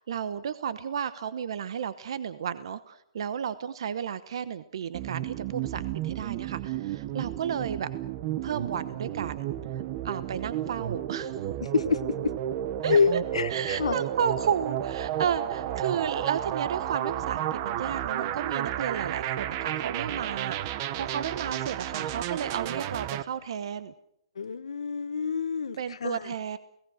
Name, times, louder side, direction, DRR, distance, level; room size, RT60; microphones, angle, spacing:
voice 1, 0.0-7.9 8.4-9.5 10.0-11.4 12.8-13.0 13.5-23.9 25.8-26.6, right 8 dB, 60° right, 14 dB, 1.0 m, -33 dB
sound 1, 4.9-23.2, right 11 dB, 30° right, 0.9 m, -32 dB
voice 2, 11.6-12.3 12.9-14.0 24.3-26.3, left 5 dB, 90° left, 13 dB, 1.2 m, -27 dB
30.0 x 18.0 x 6.4 m, 0.77 s
hypercardioid pair, 160°, 3 cm